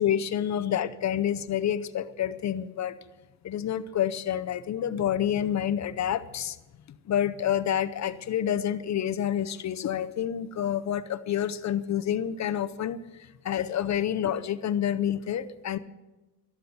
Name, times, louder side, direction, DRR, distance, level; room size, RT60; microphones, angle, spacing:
voice 1, 0.0-2.9 3.4-6.6 6.9-15.8, left 10 dB, 40° left, 12 dB, 0.6 m, -28 dB
13.5 x 12.0 x 7.0 m, 1.1 s
cardioid pair, 170°, 41 cm